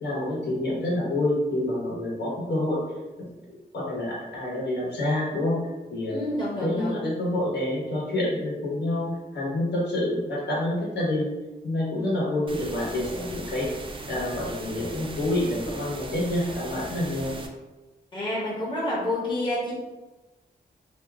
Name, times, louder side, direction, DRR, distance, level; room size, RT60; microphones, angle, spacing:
voice 1, 0.0-2.8 3.5-5.6 5.9-6.1 6.6-11.3 11.6-13.7 14.1-17.3, left 1 dB, 75° left, -6 dB, 1.1 m, -27 dB
voice 2, 6.1-7.0 18.1-19.7, left 1 dB, 25° left, -6 dB, 0.9 m, -28 dB
sound 1, 12.5-17.5, right 2 dB, 30° right, 0.3 m, -39 dB
2.6 x 2.3 x 3.4 m, 1.1 s
wide cardioid pair, 120°, 17 cm